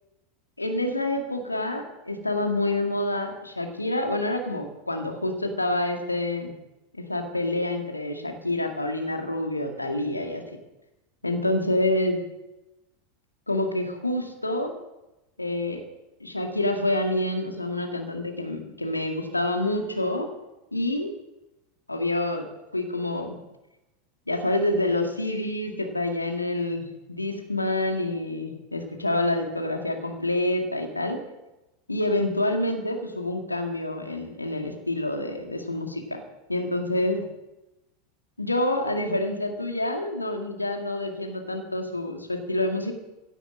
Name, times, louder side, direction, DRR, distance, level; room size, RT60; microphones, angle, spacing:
voice 1, 0.6-6.5 6.9-10.4 11.2-12.2 13.5-14.7 15.4-15.8 16.2-20.3 20.7-21.1 21.9-22.5 22.7-23.4 24.3-31.2 31.9-36.2 36.5-37.2 38.4-42.9, left 1 dB, 85° left, 4 dB, 2.2 m, -27 dB
16.5 x 9.4 x 7.6 m, 0.98 s
figure-of-eight pair, 80°, 0 cm